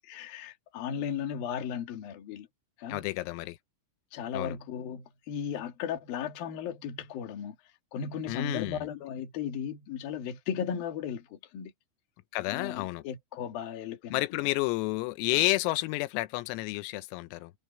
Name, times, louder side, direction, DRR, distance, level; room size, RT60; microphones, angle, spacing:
voice 1, 0.0-2.5 2.8-3.1 4.1-7.6 7.9-11.7 12.5-14.4, left 8 dB, 55° left, 3.5 m, -36 dB
voice 2, 2.9-3.6 4.3-4.6 8.3-8.8 12.3-13.0 14.1-17.5, left 19 dB, 90° left, 3.5 m, -30 dB
omnidirectional pair, 5.9 m